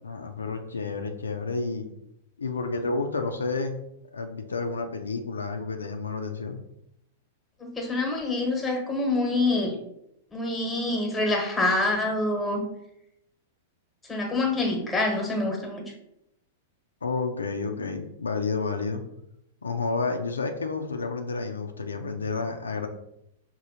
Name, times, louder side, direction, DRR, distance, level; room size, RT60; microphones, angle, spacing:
voice 1, 0.0-1.9 2.4-3.8 4.1-6.6 17.0-19.0 19.6-22.9, left 4 dB, 85° left, 5 dB, 0.4 m, -30 dB
voice 2, 7.6-9.7 10.3-12.6 14.1-15.8, left 2 dB, 10° left, 1 dB, 1.1 m, -26 dB
5.1 x 2.7 x 2.7 m, 0.81 s
figure-of-eight pair, 100°, 0 cm